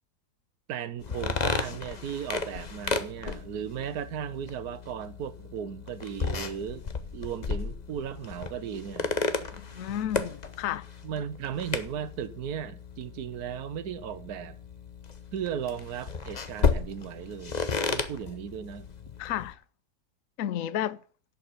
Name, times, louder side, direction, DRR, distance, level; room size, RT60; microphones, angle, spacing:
voice 1, 0.7-6.9 7.1-9.1 11.0-14.6 15.3-18.9, right 9 dB, 75° right, 1.4 m, -36 dB
sound 1, 1.0-19.5, left 5 dB, 35° left, 0.8 m, -34 dB
voice 2, 9.5-10.9 19.2-19.6 20.4-21.0, left 11 dB, 65° left, 1.0 m, -32 dB
11.0 x 5.6 x 7.7 m
omnidirectional pair, 1.7 m